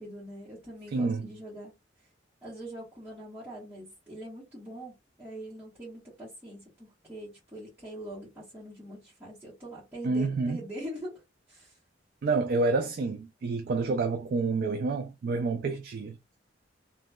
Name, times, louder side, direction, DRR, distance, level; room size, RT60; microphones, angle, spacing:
voice 1, 0.0-1.7 2.4-11.2 11.5-11.8, right 1 dB, 10° right, 1.1 m, -43 dB
voice 2, 0.9-1.3 10.0-10.6 12.2-16.2, right 3 dB, 50° right, 0.3 m, -28 dB
2.8 x 2.3 x 2.2 m
head